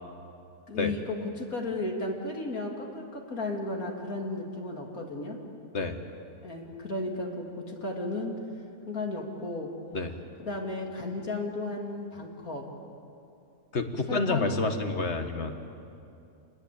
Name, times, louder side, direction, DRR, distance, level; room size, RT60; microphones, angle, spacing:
voice 1, 0.7-5.4 6.4-8.4 8.8-9.7 10.4-12.7 14.1-14.5, left 2 dB, 70° left, 0 dB, 3.5 m, -34 dB
voice 2, 13.7-15.6, left 3 dB, 45° left, 6 dB, 1.9 m, -28 dB
28.0 x 20.5 x 8.8 m, 2.6 s
omnidirectional pair, 1.6 m